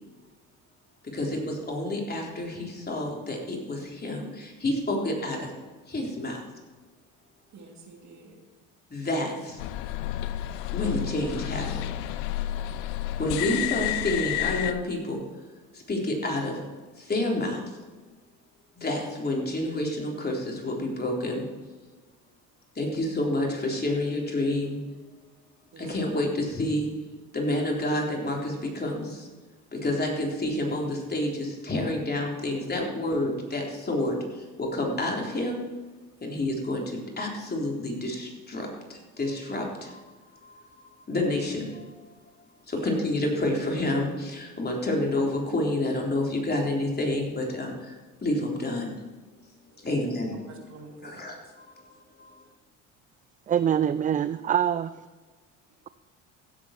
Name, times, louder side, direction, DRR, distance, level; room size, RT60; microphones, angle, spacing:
voice 1, 1.1-5.5 5.9-6.4 8.9-9.6 10.7-11.9 13.2-15.2 15.7-16.6 17.0-17.6 18.8-21.5 22.8-24.8 25.8-26.9 27.3-29.3 29.7-35.6 36.2-40.0 40.4-40.6 41.1-42.1 42.7-47.9 48.2-49.0 49.8-50.4 51.0-51.6 52.2-52.3, left 1 dB, 25° left, -1 dB, 3.8 m, -29 dB
voice 2, 7.5-8.3 25.7-25.8 42.7-42.9 49.8-50.0 50.5-51.2, right 4 dB, 50° right, 1 dB, 3.1 m, -46 dB
sound 1, 9.6-14.7, left 13 dB, 80° left, 0.7 m, -30 dB
voice 3, 53.5-54.9, right 9 dB, 25° right, 14 dB, 0.3 m, -24 dB
16.5 x 8.1 x 4.5 m, 1.3 s
supercardioid pair, 80°, 36 cm